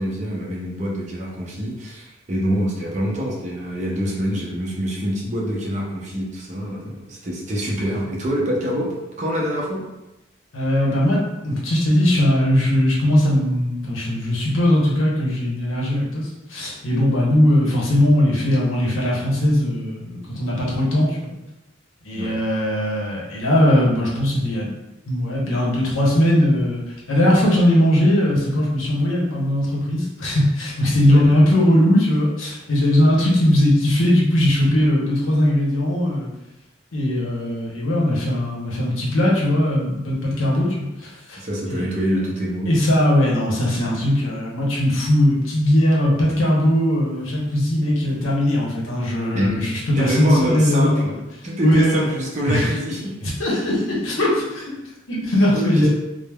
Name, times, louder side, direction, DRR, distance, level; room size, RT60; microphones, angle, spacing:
voice 1, 0.0-9.8 22.1-22.4 31.1-31.2 41.4-42.7 49.3-51.1 51.4-53.1 55.5-55.9, equal, 35° right, -3 dB, 0.5 m, -25 dB
voice 2, 10.5-21.3 22.0-24.7 25.1-26.8 27.1-36.3 36.9-41.4 41.7-41.9 42.7-51.0 51.6-52.0 52.4-52.7 53.2-54.7 55.1-55.9, left 1 dB, 90° left, -4 dB, 0.8 m, -19 dB
3.3 x 2.0 x 2.2 m, 0.97 s
head